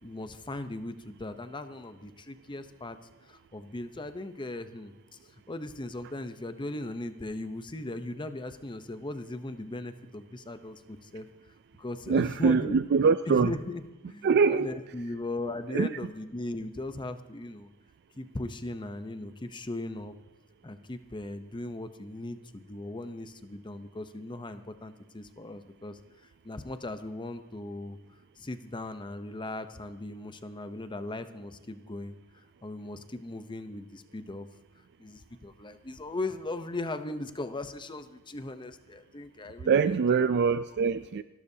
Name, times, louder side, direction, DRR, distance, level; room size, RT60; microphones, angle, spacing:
voice 1, 0.0-3.0 3.2-4.9 5.5-11.3 11.8-12.8 13.3-17.7 18.2-20.1 20.6-26.0 26.4-28.0 28.4-32.1 32.6-34.5 35.0-40.3 40.8-41.0, left 2 dB, 20° left, 0.7 m, -38 dB
voice 2, 12.1-13.5 14.2-14.7 15.7-15.9 39.6-41.2, right 5 dB, 50° right, 0.4 m, -24 dB
29.0 x 12.0 x 2.8 m
head